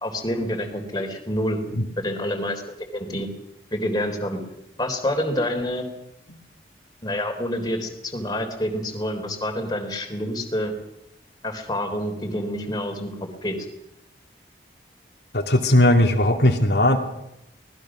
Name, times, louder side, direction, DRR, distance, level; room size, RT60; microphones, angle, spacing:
voice 1, 0.0-1.6 2.0-3.3 3.7-4.4 4.8-5.9 7.0-10.7 11.4-13.1 13.4-13.6, left 1 dB, 20° left, 3 dB, 3.7 m, -27 dB
voice 2, 15.3-17.0, left 1 dB, 70° left, 2 dB, 2.4 m, -18 dB
25.0 x 19.5 x 6.2 m, 0.82 s
head